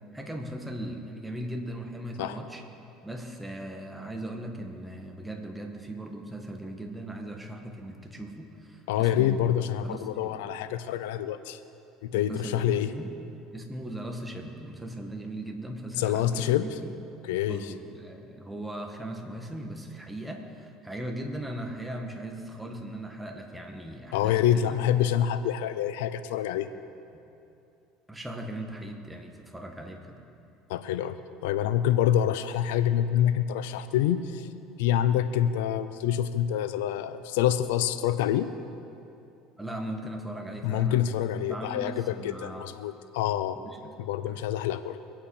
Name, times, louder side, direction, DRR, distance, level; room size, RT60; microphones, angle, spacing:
voice 1, 0.1-2.6 3.0-9.6 9.8-10.4 12.1-13.1 13.5-16.9 17.5-24.9 28.1-30.2 39.6-41.0 41.3-42.7 43.5-44.0 44.3-44.4, right 1 dB, 5° right, 2 dB, 1.8 m, -38 dB
voice 2, 8.9-11.6 12.0-12.9 16.0-16.7 17.3-17.7 24.1-26.7 30.7-34.5 34.8-38.5 40.6-43.6 44.0-45.0, left 11 dB, 85° left, 12 dB, 0.5 m, -26 dB
22.0 x 8.7 x 5.0 m, 2.7 s
supercardioid pair, 95°, 0 cm